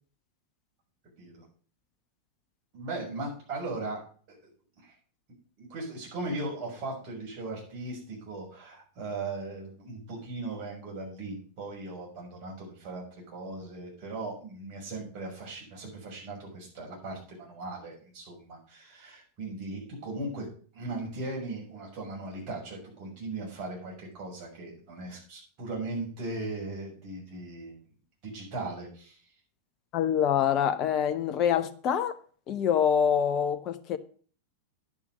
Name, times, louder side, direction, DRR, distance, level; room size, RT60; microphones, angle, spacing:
voice 1, 2.7-4.0 4.3-4.4 4.8-4.9 5.6-20.4 20.7-27.8 28.3-29.2, right 2 dB, 40° right, 6.4 m, -38 dB
voice 2, 29.9-32.2 32.5-34.0, left 8 dB, 35° left, 0.8 m, -25 dB
10.5 x 6.0 x 6.6 m
figure-of-eight pair, 90°, 0 cm